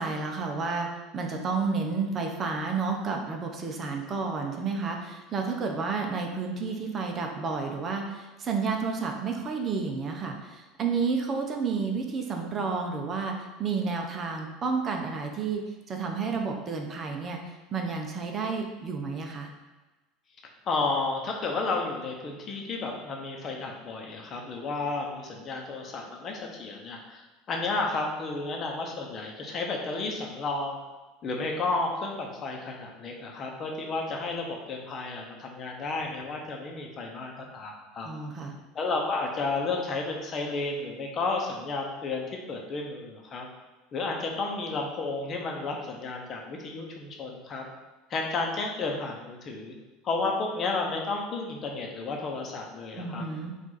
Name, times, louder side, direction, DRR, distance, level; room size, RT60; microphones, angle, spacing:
voice 1, 0.0-19.5 38.0-38.6 52.9-53.5, right 4 dB, 35° right, 2 dB, 0.7 m, -31 dB
voice 2, 20.7-27.2 27.5-30.8 31.2-38.1 38.7-43.5 43.9-47.7 48.1-49.7 50.0-53.2, left 3 dB, 40° left, 1 dB, 0.9 m, -32 dB
4.8 x 2.6 x 4.0 m, 1.2 s
supercardioid pair, 95°, 0 cm